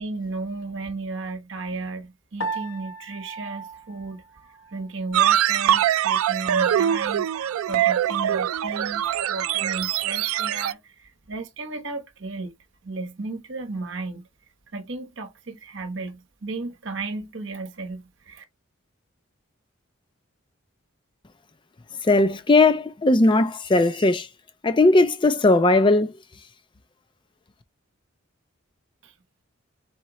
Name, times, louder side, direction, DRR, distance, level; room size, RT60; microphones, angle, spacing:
voice 1, 0.0-4.2 4.7-7.3 7.7-12.5 12.8-14.3 14.7-18.4 29.0-29.1, right 3 dB, 60° right, 1.0 m, -34 dB
Piano, 2.4-4.9, right 3 dB, 65° left, 0.9 m, -36 dB
sound 1, 5.1-10.7, right 10 dB, 80° right, 0.3 m, -23 dB
voice 2, 22.0-24.3 24.6-26.1, left 2 dB, 20° left, 0.4 m, -18 dB
4.3 x 3.7 x 3.0 m
head